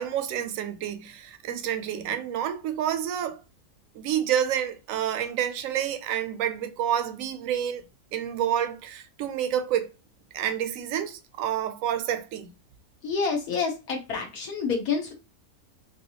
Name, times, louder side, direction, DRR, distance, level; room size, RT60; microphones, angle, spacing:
voice 1, 0.0-3.4 3.9-9.9 10.3-12.5, right 10 dB, 70° right, 0.9 m, -29 dB
voice 2, 13.0-15.1, left 5 dB, 80° left, 1.2 m, -28 dB
3.1 x 2.7 x 2.8 m
omnidirectional pair, 1.6 m